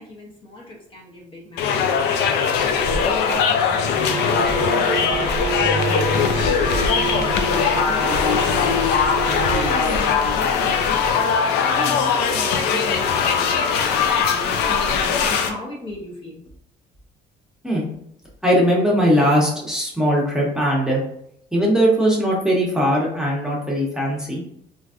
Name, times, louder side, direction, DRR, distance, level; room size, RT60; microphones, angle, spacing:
voice 1, 0.0-11.3 11.7-16.4, left 1 dB, 30° left, -3 dB, 0.7 m, -36 dB
sound 1, 1.6-15.5, left 6 dB, 80° left, 0.4 m, -20 dB
sound 2, 3.9-9.9, right 5 dB, 45° right, 0.4 m, -29 dB
sound 3, 5.1-11.1, left 2 dB, 65° left, 1.0 m, -33 dB
voice 2, 18.4-21.0 21.5-24.4, equal, 5° right, -4 dB, 0.9 m, -19 dB
3.1 x 2.5 x 2.4 m, 0.73 s
cardioid pair, 110°, 17 cm